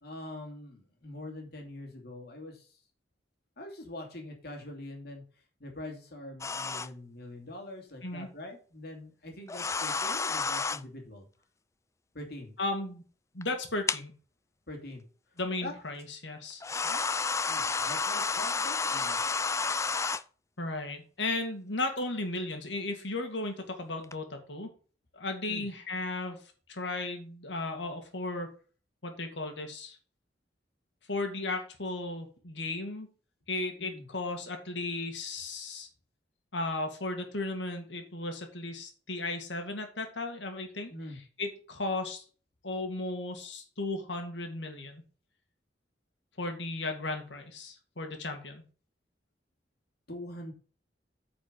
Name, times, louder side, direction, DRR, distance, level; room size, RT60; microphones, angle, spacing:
voice 1, 0.0-2.8 3.6-5.2 5.6-11.3 12.1-12.6 14.7-15.0 15.6-15.7 16.8-17.0 17.4-19.2 25.5-25.7 33.8-34.1 40.9-41.2 50.1-50.5, left 1 dB, 60° left, 2 dB, 2.7 m, -44 dB
sound 1, 6.4-6.9 9.5-10.8 13.4-13.5 13.9-14.0 15.4-15.5 16.6-20.2 24.0-24.1, left 4 dB, 15° left, 0.3 m, -30 dB
voice 2, 12.6-13.0 13.3-14.1 15.4-16.6 20.6-24.7 25.1-26.4 26.7-28.5 29.0-30.0 31.1-33.1 33.5-35.9 36.5-40.9 41.4-42.2 42.6-45.0 46.4-48.6, left 2 dB, 85° left, 5 dB, 2.2 m, -35 dB
9.2 x 5.1 x 5.4 m, 0.39 s
head